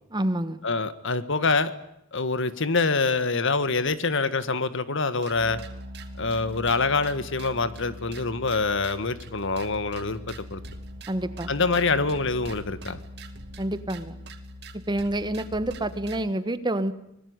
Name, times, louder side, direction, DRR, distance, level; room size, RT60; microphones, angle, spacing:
voice 1, 0.1-0.6 11.1-11.5 13.6-14.2 14.9-16.9, right 1 dB, 20° right, 12 dB, 1.5 m, -28 dB
voice 2, 0.6-1.7 2.1-5.6 6.2-10.6 11.5-13.0, left 3 dB, 65° left, 13 dB, 1.8 m, -25 dB
sound 1, 5.2-16.2, equal, 55° right, 2.4 m, -41 dB
25.0 x 21.5 x 9.7 m, 0.79 s
head